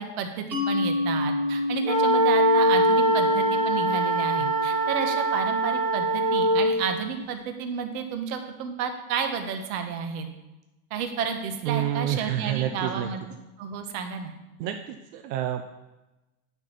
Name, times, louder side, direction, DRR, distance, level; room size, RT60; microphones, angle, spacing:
voice 1, 0.0-10.3 10.9-13.2 13.6-14.3, right 6 dB, 60° right, 6 dB, 1.3 m, -31 dB
Mallet percussion, 0.5-5.9, left 2 dB, 5° right, 0.4 m, -30 dB
sound 1, 1.8-6.8, right 1 dB, 15° left, 1.6 m, -22 dB
voice 2, 11.6-13.1 14.6-15.6, right 11 dB, 85° right, 6 dB, 0.9 m, -28 dB
9.6 x 4.7 x 5.8 m, 1.0 s
supercardioid pair, 160°, 49 cm